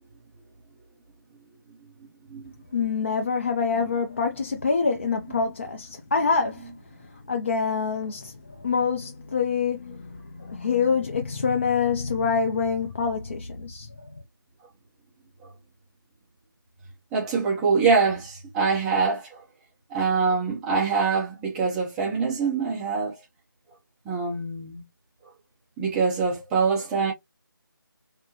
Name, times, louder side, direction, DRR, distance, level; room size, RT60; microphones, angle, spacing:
voice 1, 2.7-6.7 7.3-13.9, left 5 dB, 30° left, 0.5 m, -26 dB
voice 2, 17.1-19.4 19.9-23.1 24.0-24.8 25.8-27.1, right 5 dB, 5° right, 0.8 m, -24 dB
6.0 x 2.1 x 3.0 m
figure-of-eight pair, 165°, 12 cm